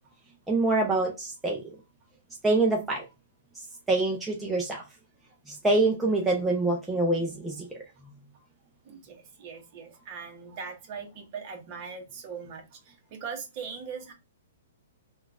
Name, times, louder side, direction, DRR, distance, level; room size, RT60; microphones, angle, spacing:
voice 1, 0.5-1.7 2.4-3.1 3.9-4.8 5.5-7.7, right 2 dB, 5° right, 0.5 m, -25 dB
voice 2, 8.8-14.1, right 6 dB, 35° right, 1.0 m, -40 dB
3.7 x 2.3 x 2.3 m
hypercardioid pair, 150°, 0 cm